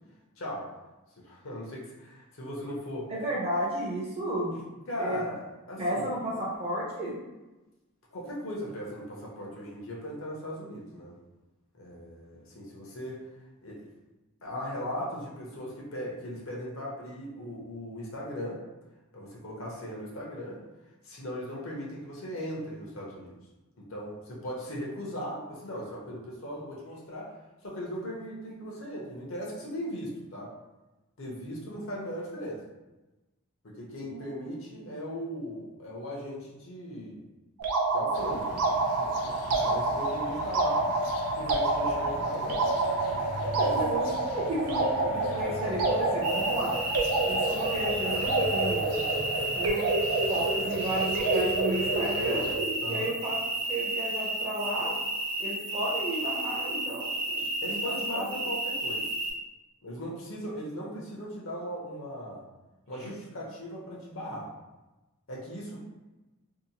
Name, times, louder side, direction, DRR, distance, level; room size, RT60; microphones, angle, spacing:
voice 1, 0.4-0.7 1.2-3.1 4.9-5.4 5.7-6.1 8.1-11.1 11.8-13.2 13.6-13.8 14.4-18.6 19.1-20.6 21.0-23.3 23.8-27.3 27.6-30.5 31.2-32.6 33.6-37.2 37.9-40.9 41.4-42.7 43.6-43.8 50.3-50.7 52.8-53.1 57.6-59.1 59.8-62.4 62.9-64.5 65.3-65.8, equal, 60° left, -4 dB, 0.7 m, -38 dB
voice 2, 3.1-4.7 5.0-5.2 5.8-7.1 34.0-34.3 34.9-35.0 43.4-46.8 47.3-49.1 49.5-49.9 50.2-52.5 52.9-53.4 53.7-54.9 55.4-58.3 63.0-63.1, right 1 dB, 25° right, -5 dB, 0.6 m, -33 dB
sound 1, 37.6-52.8, right 2 dB, 90° right, 0.5 m, -28 dB
sound 2, 38.1-52.6, left 3 dB, 80° left, 0.3 m, -41 dB
sound 3, 46.2-59.3, right 1 dB, 60° right, 0.9 m, -32 dB
2.7 x 2.1 x 2.7 m, 1.1 s
head